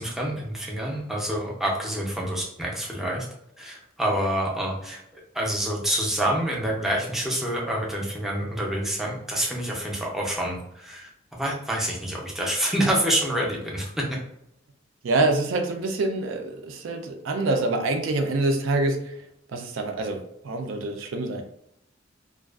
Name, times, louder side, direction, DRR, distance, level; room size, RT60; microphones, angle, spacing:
voice 1, 0.0-3.3 3.6-14.2, right 1 dB, ahead, -3 dB, 0.4 m, -27 dB
voice 2, 15.0-19.0 19.5-21.4, right 2 dB, 90° right, 4 dB, 0.4 m, -26 dB
2.4 x 2.2 x 2.3 m, 0.77 s
head